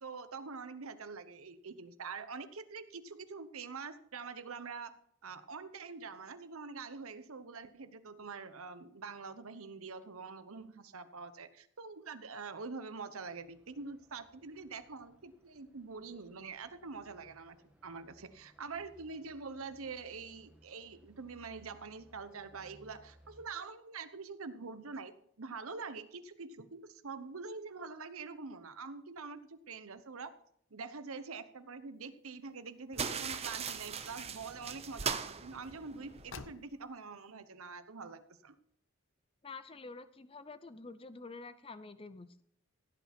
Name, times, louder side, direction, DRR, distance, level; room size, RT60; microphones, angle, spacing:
voice 1, 0.0-5.0 5.2-17.6 17.8-30.3 30.7-38.5, right 4 dB, 80° right, 11 dB, 1.0 m, -45 dB
sound 1, 13.2-23.5, right 1 dB, 5° right, 1.5 m, -64 dB
sound 2, 32.9-36.3, right 6 dB, 30° right, 0.6 m, -39 dB
Car, 33.2-34.0 36.1-37.0, left 4 dB, 60° left, 0.8 m, -51 dB
voice 2, 39.4-42.4, left 3 dB, 25° left, 12 dB, 0.5 m, -48 dB
16.0 x 8.3 x 4.4 m, 0.69 s
head